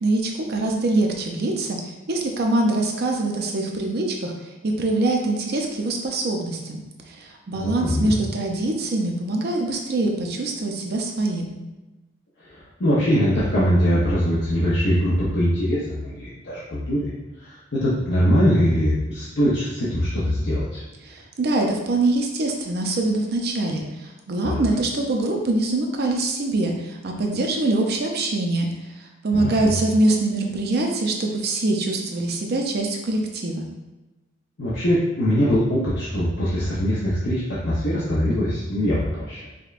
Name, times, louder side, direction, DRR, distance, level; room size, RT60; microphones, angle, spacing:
voice 1, 0.0-1.8 2.1-4.3 4.6-11.5 21.0-28.7 29.2-33.7, right 2 dB, 55° right, 2 dB, 0.5 m, -24 dB
voice 2, 7.5-8.2 12.4-17.1 17.4-20.8 24.4-24.7 29.3-29.7 34.6-39.4, equal, 60° left, -9 dB, 0.7 m, -22 dB
4.9 x 2.2 x 2.4 m, 1.1 s
head